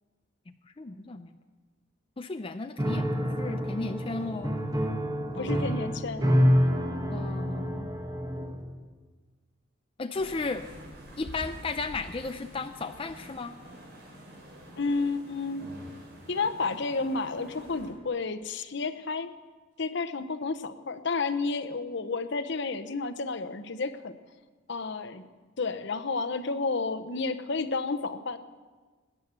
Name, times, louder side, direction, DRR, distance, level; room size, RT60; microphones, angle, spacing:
voice 1, 0.8-1.4 2.2-4.6 5.3-5.9 7.1-8.0 10.0-10.7 11.2-13.5, left 3 dB, 25° left, 7 dB, 0.5 m, -35 dB
Piano, 2.8-8.7, equal, 20° right, 1.4 m, -27 dB
voice 2, 5.4-6.3 14.8-15.7 16.3-19.3 19.8-24.2 24.7-25.2 25.6-28.4, left 4 dB, 60° left, 11 dB, 0.8 m, -31 dB
sound 1, 10.1-17.9, equal, 55° right, 4.8 m, -47 dB
19.5 x 9.7 x 6.9 m, 1.4 s
head